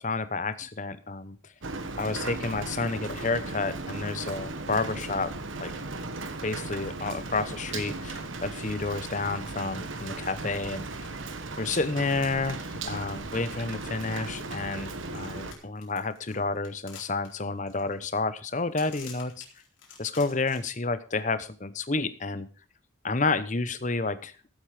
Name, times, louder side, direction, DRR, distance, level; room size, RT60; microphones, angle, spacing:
voice 1, 0.0-1.4 2.0-5.7 6.4-11.1 11.6-19.4 20.0-22.5 23.0-24.3, left 3 dB, 35° left, 13 dB, 0.9 m, -30 dB
Rain, 1.6-15.5, right 3 dB, 75° right, 1.4 m, -37 dB
sound 1, 9.3-9.4 9.7-10.4 10.6-13.9 14.8-20.6, left 6 dB, 70° left, 4.2 m, -50 dB
14.5 x 8.3 x 5.0 m, 0.36 s
head